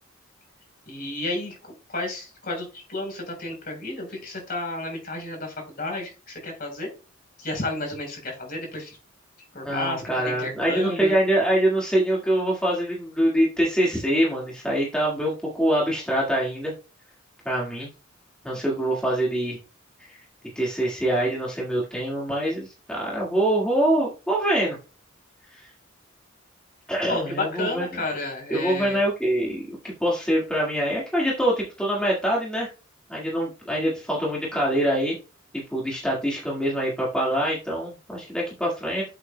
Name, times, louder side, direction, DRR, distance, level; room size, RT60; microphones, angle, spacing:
voice 1, 0.9-6.9 7.4-9.0 9.5-11.1 27.0-29.0, left 2 dB, 45° left, 2 dB, 3.9 m, -32 dB
voice 2, 9.6-16.7 17.5-17.9 18.4-19.6 20.6-24.8 25.5-25.7 26.9-28.0 28.5-32.7 33.1-35.2 35.5-39.0, right 1 dB, 5° left, -4 dB, 1.8 m, -24 dB
8.5 x 7.9 x 2.2 m, 0.32 s
head